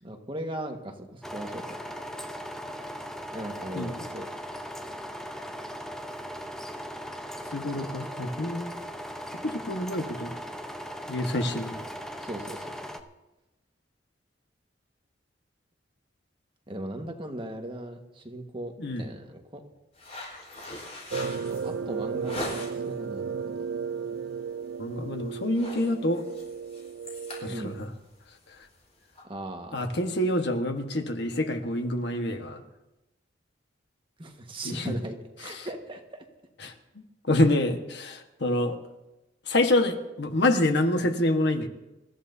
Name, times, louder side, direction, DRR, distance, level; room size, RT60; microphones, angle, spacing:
voice 1, 0.0-1.8 3.3-4.3 7.7-7.9 8.2-8.3 11.5-11.6 12.2-12.6 16.7-19.6 21.5-23.3 27.5-27.7 29.3-29.8 34.2-36.3, right 1 dB, 30° right, 3 dB, 1.5 m, -38 dB
sound 1, 1.2-13.0, equal, 5° left, 0.8 m, -38 dB
voice 2, 7.5-8.8 9.4-10.3 11.1-11.8 18.8-19.0 24.8-26.2 27.4-27.9 29.7-32.6 34.6-34.9 35.5-35.7 36.6-36.7 37.3-38.8 39.5-41.7, left 1 dB, 65° left, 5 dB, 1.4 m, -27 dB
sound 2, 19.9-23.0 23.4-23.8 24.1-24.3 24.6-25.0 25.3-29.2, left 1 dB, 35° left, 4.6 m, -41 dB
sound 3, 21.1-27.8, right 6 dB, 70° right, 0.4 m, -34 dB
27.5 x 14.5 x 2.8 m, 0.99 s
head